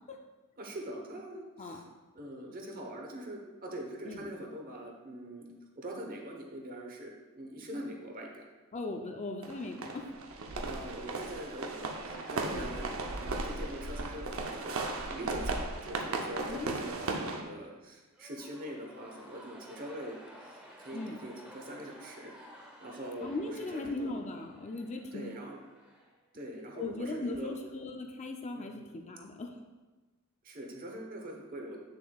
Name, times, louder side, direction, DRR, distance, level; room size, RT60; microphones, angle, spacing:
voice 1, 0.6-1.8 2.1-5.5 5.8-8.4 10.6-12.9 13.2-20.2 20.4-22.3 22.8-24.2 25.1-25.6 26.3-27.6 28.5-28.9 30.4-31.8, right 1 dB, 40° right, 0 dB, 1.0 m, -43 dB
voice 2, 8.7-10.1 12.5-12.7 16.5-16.8 20.9-21.2 23.2-25.3 26.8-29.6, left 2 dB, 30° left, 3 dB, 0.4 m, -38 dB
sound 1, 9.4-17.4, right 3 dB, 70° right, 0.7 m, -36 dB
sound 2, 18.1-26.6, equal, 5° right, 0.8 m, -54 dB
8.3 x 6.7 x 2.3 m, 1.2 s
head